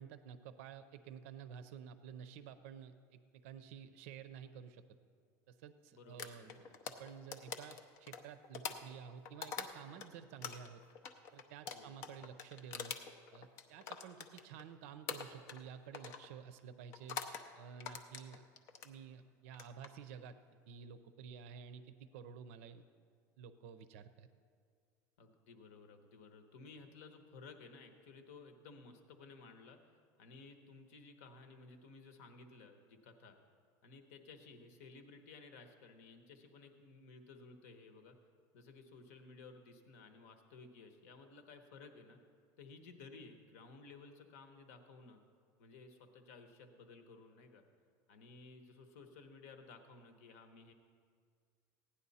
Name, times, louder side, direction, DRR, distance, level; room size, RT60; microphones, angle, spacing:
voice 1, 0.0-4.8 5.5-10.8 11.3-13.0 13.3-18.5 18.8-20.4 20.7-22.8 23.4-24.3, right 7 dB, 70° right, 12 dB, 0.6 m, -52 dB
voice 2, 5.9-6.7 11.7-12.3 25.2-29.8 30.2-33.4 33.8-38.2 38.5-42.2 42.6-45.2 45.6-47.6 48.1-50.7, left 4 dB, 75° left, 7 dB, 1.2 m, -56 dB
sound 1, 6.2-10.1 10.4-14.7 15.1-15.7 15.9-16.3 16.9-17.4 17.8-18.9 19.5-19.9, left 7 dB, 40° left, 0.6 m, -45 dB
16.0 x 9.9 x 4.2 m, 2.1 s
cardioid pair, 180°, 8 cm